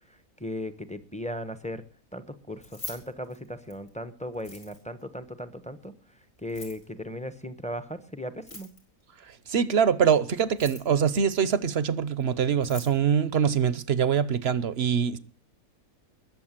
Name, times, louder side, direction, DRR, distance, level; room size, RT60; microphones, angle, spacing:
voice 1, 0.1-1.8 2.1-8.7, left 1 dB, 5° left, 0.9 m, -37 dB
Keys jangling, 2.5-3.9 4.3-5.0 6.4-6.9 8.3-9.0 10.4-11.0 12.2-12.3 12.5-13.0, left 2 dB, 60° left, 5.2 m, -43 dB
voice 2, 9.3-15.2, right 7 dB, 50° right, 1.0 m, -24 dB
21.5 x 7.3 x 7.5 m
omnidirectional pair, 1.5 m